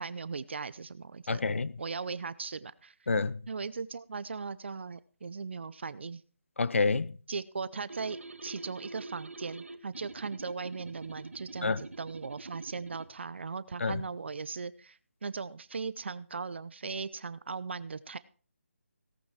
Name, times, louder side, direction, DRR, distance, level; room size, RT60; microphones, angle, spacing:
voice 1, 0.0-1.4 1.8-2.9 3.5-6.2 7.3-18.2, right 4 dB, 55° right, 0.8 m, -38 dB
voice 2, 1.3-1.7 3.1-3.4 6.6-7.2 11.6-11.8 13.8-14.0, left 4 dB, 65° left, 0.8 m, -28 dB
sound 1, 7.9-13.1, right 2 dB, 75° right, 1.6 m, -46 dB
17.5 x 9.3 x 4.5 m
figure-of-eight pair, 155°, 7 cm